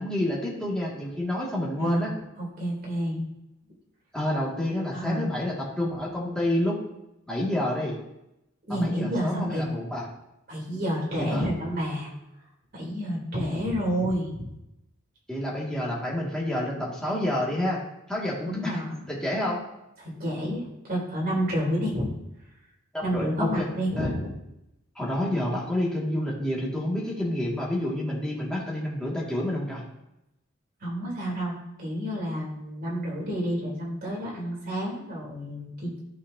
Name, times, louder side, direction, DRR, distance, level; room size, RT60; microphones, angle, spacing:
voice 1, 0.0-2.1 4.1-6.8 7.3-7.9 8.7-10.0 11.1-11.5 15.3-17.8 18.1-18.6 19.1-19.6 22.9-23.7 24.0-24.1 25.0-29.8, left 1 dB, 5° left, -5 dB, 1.9 m, -28 dB
voice 2, 1.8-2.1 2.4-3.2 4.9-5.3 8.7-9.6 10.5-12.1 12.7-14.4 18.5-19.0 20.0-22.1 23.0-24.3 30.8-36.0, equal, 45° right, -4 dB, 3.1 m, -29 dB
13.5 x 4.9 x 2.7 m, 0.89 s
head